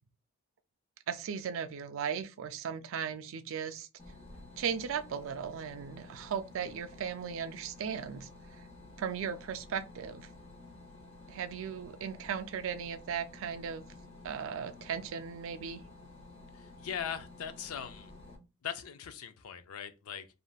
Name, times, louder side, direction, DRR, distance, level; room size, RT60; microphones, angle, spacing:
voice 1, 1.1-3.9 4.6-8.3 9.0-10.3 11.3-13.8 14.2-15.8, right 7 dB, 65° right, 0.3 m, -37 dB
sound 1, 4.0-18.4, left 2 dB, 25° left, 0.6 m, -52 dB
voice 2, 16.5-18.1 18.6-20.3, left 8 dB, 80° left, 0.4 m, -40 dB
3.3 x 2.5 x 2.3 m
head